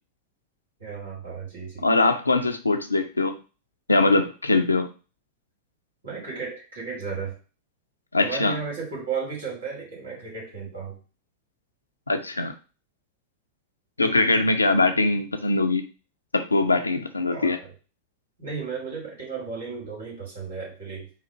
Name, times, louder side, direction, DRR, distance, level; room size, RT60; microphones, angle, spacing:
voice 1, 0.8-1.9 6.0-7.4 8.2-11.0 17.3-17.7 18.4-21.1, right 5 dB, 65° right, -3 dB, 2.5 m, -34 dB
voice 2, 1.8-3.4 3.9-4.9 8.1-8.6 12.1-12.5 14.0-15.8 16.3-17.6, left 3 dB, 80° left, 7 dB, 0.5 m, -22 dB
4.0 x 2.5 x 4.4 m, 0.34 s
figure-of-eight pair, 90°, 0 cm